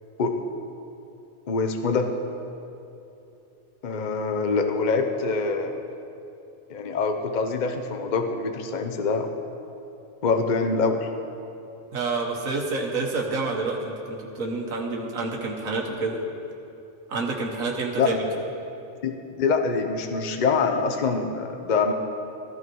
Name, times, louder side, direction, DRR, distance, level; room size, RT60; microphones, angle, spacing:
voice 1, 1.5-2.1 3.8-5.7 6.7-9.3 10.2-11.1 18.0-18.2 19.0-21.9, left 4 dB, 40° left, 6 dB, 0.8 m, -25 dB
voice 2, 11.9-16.2 17.1-18.3, right 3 dB, 85° right, 0 dB, 1.7 m, -28 dB
14.5 x 13.5 x 4.6 m, 2.8 s
omnidirectional pair, 1.4 m